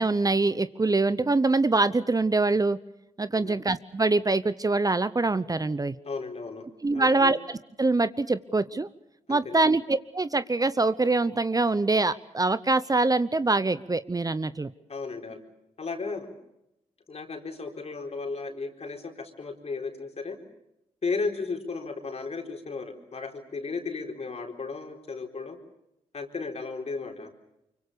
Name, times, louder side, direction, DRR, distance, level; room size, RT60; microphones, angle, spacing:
voice 1, 0.0-2.8 3.2-5.9 6.8-7.4 7.8-8.9 9.3-14.7, right 3 dB, 25° right, 15 dB, 0.9 m, -24 dB
voice 2, 6.1-6.6 6.9-7.3 9.3-9.7 14.9-15.4 15.8-16.3 17.1-20.4 21.0-25.6 26.1-27.3, left 4 dB, 50° left, 4 dB, 4.2 m, -34 dB
24.5 x 24.5 x 6.9 m, 0.85 s
supercardioid pair, 45°, 14 cm